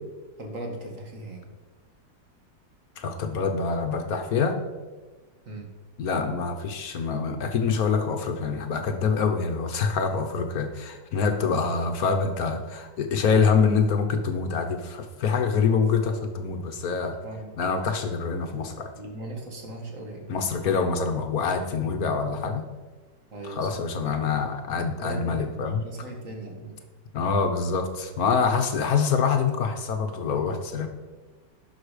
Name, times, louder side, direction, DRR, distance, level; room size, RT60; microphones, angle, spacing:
voice 1, 0.4-1.5 5.5-5.7 10.1-10.4 16.1-16.2 17.2-17.5 19.0-20.3 23.3-23.8 25.0-26.8 28.4-28.7, right 2 dB, 45° right, 2 dB, 1.9 m, -38 dB
voice 2, 3.0-4.6 6.0-17.2 17.6-18.9 20.3-22.6 23.4-25.8 27.1-30.9, left 5 dB, 60° left, 6 dB, 1.3 m, -25 dB
11.0 x 6.4 x 5.0 m, 1.3 s
omnidirectional pair, 2.0 m